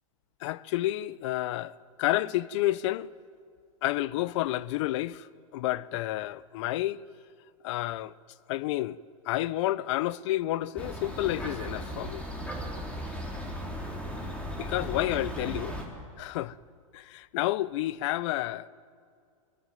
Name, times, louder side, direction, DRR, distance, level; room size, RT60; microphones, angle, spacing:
voice 1, 0.4-3.1 3.8-5.3 5.5-7.0 7.6-8.1 8.5-9.0 9.2-12.2 14.6-15.8 16.2-16.6 16.9-18.7, left 15 dB, 55° left, 0.7 m, -30 dB
sound 1, 10.8-15.8, equal, 5° left, 3.5 m, -36 dB
23.0 x 17.5 x 9.3 m
hypercardioid pair, 125°, 18 cm